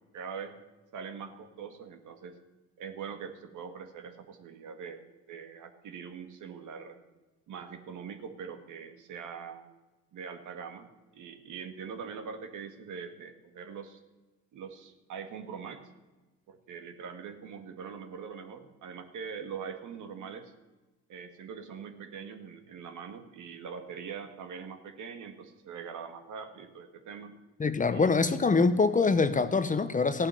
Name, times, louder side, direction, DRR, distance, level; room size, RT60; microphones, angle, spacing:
voice 1, 0.1-0.6 0.9-2.4 2.8-5.0 5.3-7.0 7.5-9.7 10.1-10.9 11.1-14.0 14.5-15.8 16.5-20.5 21.1-27.3 27.9-28.2, right 6 dB, 60° right, 2.0 m, -42 dB
voice 2, 27.6-30.3, left 4 dB, 25° left, 0.9 m, -24 dB
15.0 x 8.8 x 7.7 m
supercardioid pair, 70°, 33 cm